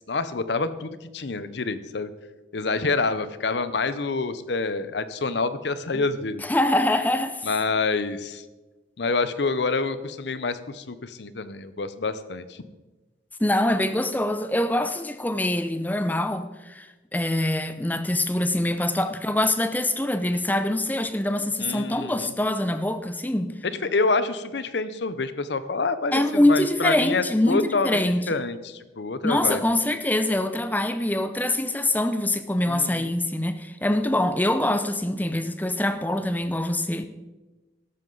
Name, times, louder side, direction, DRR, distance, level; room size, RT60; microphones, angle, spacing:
voice 1, 0.1-2.1 2.5-6.4 7.4-8.4 9.0-12.6 21.6-22.3 23.7-29.6 32.7-33.1, left 3 dB, 70° left, 13 dB, 0.7 m, -27 dB
voice 2, 6.4-7.5 13.4-23.5 26.1-28.2 29.2-37.1, left 1 dB, 10° left, 10 dB, 0.5 m, -24 dB
13.0 x 12.5 x 4.0 m, 1.2 s
head